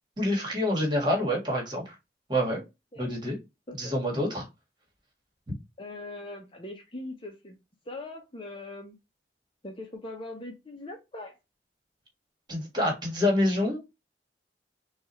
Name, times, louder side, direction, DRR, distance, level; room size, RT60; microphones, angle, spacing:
voice 1, 0.2-1.8 2.3-2.6 3.0-3.3 3.8-4.4 5.5-5.6 12.5-13.8, left 1 dB, 25° right, 0 dB, 1.7 m, -27 dB
voice 2, 3.7-4.2 5.8-7.6 7.9-9.0 9.6-11.4, left 2 dB, 30° left, 2 dB, 0.7 m, -41 dB
6.1 x 2.4 x 3.0 m, 0.24 s
head